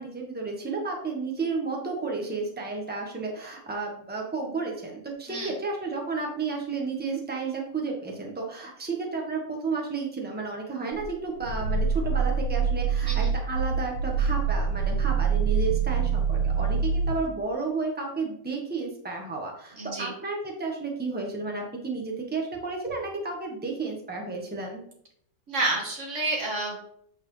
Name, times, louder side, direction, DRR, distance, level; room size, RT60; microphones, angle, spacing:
voice 1, 0.0-24.8, right 4 dB, 5° right, 0 dB, 0.9 m, -32 dB
Growling, 10.9-17.3, right 5 dB, 85° right, 1.5 m, -25 dB
voice 2, 19.8-20.1 25.5-26.9, right 2 dB, 40° right, 0 dB, 1.8 m, -30 dB
8.2 x 4.4 x 3.3 m, 0.67 s
omnidirectional pair, 2.0 m